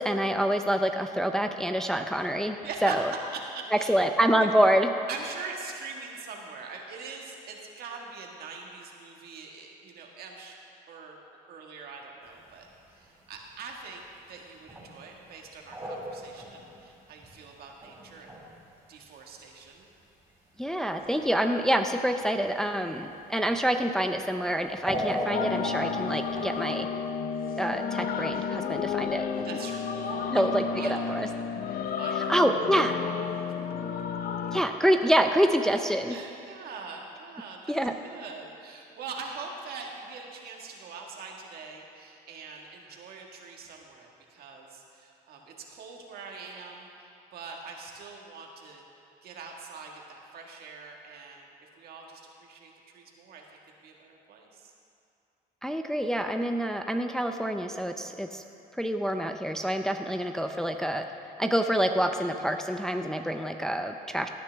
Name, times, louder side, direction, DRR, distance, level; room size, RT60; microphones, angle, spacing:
voice 1, 0.0-2.6 2.8-3.1 3.9-4.9 20.6-26.9 27.6-29.5 30.3-31.3 32.3-33.0 34.5-36.2 37.7-38.0 55.6-58.4 58.8-61.0 61.4-64.3, equal, 5° left, 5 dB, 0.5 m, -26 dB
voice 2, 2.6-4.0 4.4-4.5 5.1-10.6 10.9-11.2 11.5-18.3 18.9-19.9 29.4-31.4 31.8-32.4 36.0-37.8 38.0-48.8 49.2-54.7, right 4 dB, 65° right, 1 dB, 1.7 m, -43 dB
sound 1, 12.4-12.8 13.1-13.2 14.2-14.3 14.7-15.0 15.3-17.5 17.8-18.5 18.8-18.9 19.8-19.9 20.9-21.4 23.3-23.6 24.0-24.1 24.7-26.8, equal, 15° right, 3.3 m, -35 dB
sound 2, 25.3-34.6, left 6 dB, 60° left, 0.7 m, -32 dB
17.5 x 9.7 x 3.4 m, 2.6 s
cardioid pair, 110°, 17 cm